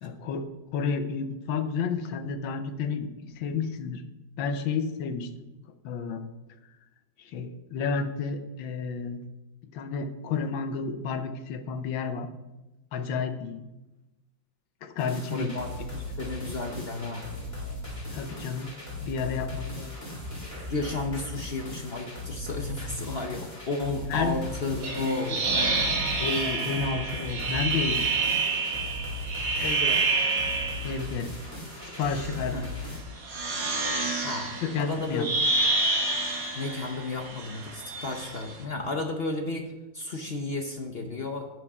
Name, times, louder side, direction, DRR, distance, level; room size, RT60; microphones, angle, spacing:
voice 1, 0.0-4.0 4.4-5.3 5.8-6.2 7.2-9.2 9.7-12.3 12.9-13.6 14.8-15.5 18.1-18.7 19.0-20.0 24.1-24.4 24.6-24.8 26.2-28.1 30.8-31.3 31.8-32.9 34.6-35.3, left 5 dB, 80° left, 9 dB, 1.6 m, -31 dB
sound 1, 15.0-33.0, left 2 dB, 20° left, 2.4 m, -38 dB
voice 2, 15.3-17.3 20.7-25.4 29.6-30.1 32.5-32.7 34.2-35.3 36.6-41.5, left 2 dB, 55° left, 4 dB, 0.6 m, -33 dB
sound 2, 24.8-31.0 31.8-32.4 33.2-38.5, right 3 dB, 70° right, 2.3 m, -28 dB
10.5 x 8.9 x 3.6 m, 1.0 s
omnidirectional pair, 2.1 m